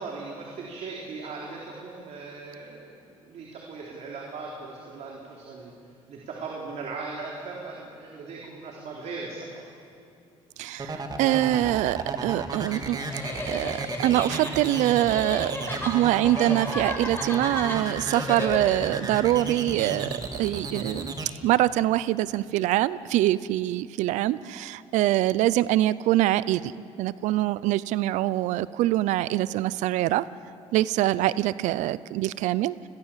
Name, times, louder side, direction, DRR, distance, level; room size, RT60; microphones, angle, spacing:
voice 1, 0.0-9.8, right 4 dB, 65° right, -2 dB, 3.9 m, -39 dB
voice 2, 10.6-13.0 13.4-15.5 15.8-21.1 21.4-26.7 27.0-30.3 30.7-32.7, right 15 dB, 85° right, 18 dB, 0.6 m, -24 dB
sound 1, 10.8-21.3, right 3 dB, 35° right, 2.9 m, -34 dB
sound 2, 12.9-18.9, left 2 dB, 15° left, 7.8 m, -34 dB
29.0 x 21.5 x 7.5 m, 2.4 s
cardioid pair, 85°, 12 cm